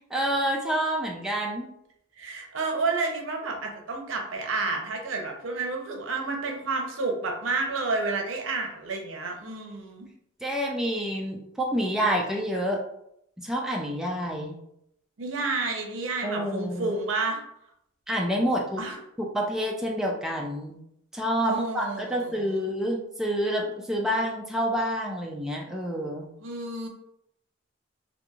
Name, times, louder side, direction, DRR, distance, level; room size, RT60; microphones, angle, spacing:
voice 1, 0.1-1.7 10.4-12.8 13.4-14.5 16.2-16.9 18.1-18.8 19.3-20.8 21.1-26.3, equal, 5° right, -2 dB, 0.3 m, -28 dB
voice 2, 2.2-10.1 15.2-17.4 18.8-19.0 21.4-22.7 26.4-26.9, right 3 dB, 80° right, 2 dB, 0.6 m, -30 dB
2.9 x 2.5 x 2.3 m, 0.76 s
head